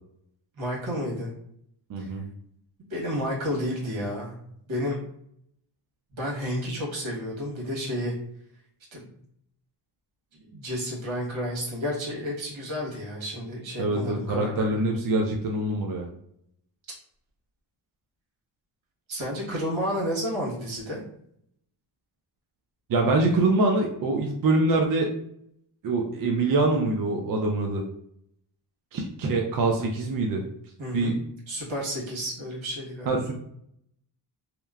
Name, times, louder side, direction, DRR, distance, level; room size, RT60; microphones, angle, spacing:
voice 1, 0.6-1.3 2.0-2.1 2.8-4.4 4.7-5.0 6.1-8.1 8.9-9.1 10.3-14.9 19.1-21.0 30.8-31.2 31.5-33.1, equal, 70° right, -4 dB, 1.4 m, -31 dB
voice 2, 1.9-2.3 13.8-16.1 22.9-25.1 25.8-27.8 28.9-30.4 30.9-31.1 33.1-33.4, right 2 dB, 45° right, 1 dB, 0.4 m, -24 dB
2.9 x 2.1 x 2.3 m, 0.71 s
cardioid pair, 100°, 48 cm